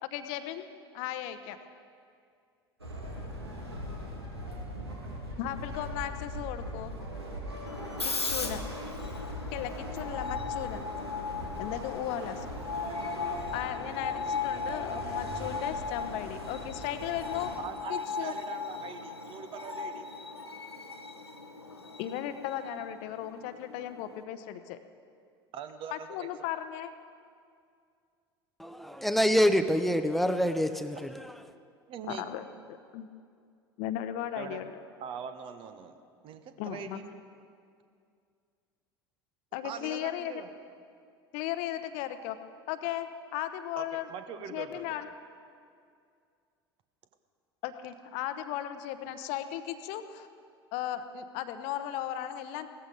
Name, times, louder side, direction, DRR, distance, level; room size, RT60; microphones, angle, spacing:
voice 1, 0.0-0.7 0.9-1.6 5.4-6.9 8.0-8.6 9.5-10.8 11.6-12.5 13.5-17.5 17.9-18.3 22.0-24.8 25.9-26.9 32.1-33.1 33.8-34.7 36.6-37.0 39.5-40.4 41.3-42.4 42.7-44.1 44.5-45.1 47.6-50.3 50.7-52.7, left 11 dB, 50° left, 10 dB, 0.9 m, -36 dB
sound 1, 2.8-17.6, equal, 85° right, 2.5 m, -40 dB
Screech, 7.7-24.2, left 4 dB, 85° left, 1.0 m, -38 dB
voice 2, 17.6-20.1 25.5-26.3 31.9-32.2 34.3-34.6 35.0-36.0 36.2-37.2 39.6-40.5 43.8-44.8, right 7 dB, 40° right, 9 dB, 1.2 m, -42 dB
voice 3, 28.6-31.3, equal, ahead, 10 dB, 0.8 m, -26 dB
18.0 x 14.0 x 5.3 m, 2.3 s
figure-of-eight pair, 75°, 13 cm